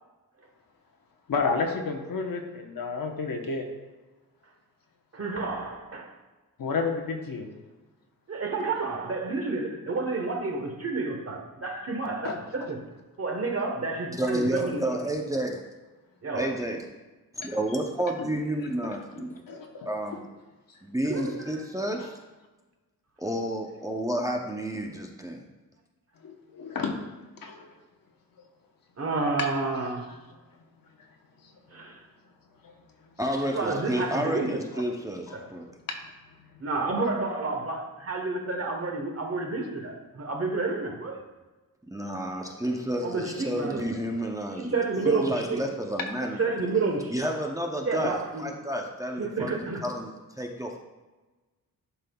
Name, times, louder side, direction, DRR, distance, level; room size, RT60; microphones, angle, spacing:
voice 1, 1.3-3.7 6.6-7.5 12.2-12.4 17.4-17.5 19.5-19.9 26.2-26.9 27.4-27.6 35.9-36.0, left 4 dB, 70° left, 3 dB, 1.0 m, -30 dB
voice 2, 5.1-6.1 8.3-12.8 13.2-15.0 16.2-16.6 21.0-21.6 29.0-30.1 31.7-32.0 33.4-34.7 35.3-35.4 36.6-41.2 43.0-43.9 44.6-45.7 46.2-47.1 47.8-48.4 49.2-49.8, right 3 dB, 40° right, 2 dB, 1.1 m, -30 dB
voice 3, 14.2-15.6 16.4-16.8 17.4-19.4 19.9-20.2 20.8-22.2 23.2-25.4 33.2-35.6 41.9-44.7 45.1-46.4 47.1-50.7, right 1 dB, 10° right, 0 dB, 0.6 m, -30 dB
11.0 x 5.3 x 2.3 m, 1.2 s
wide cardioid pair, 135°, 36 cm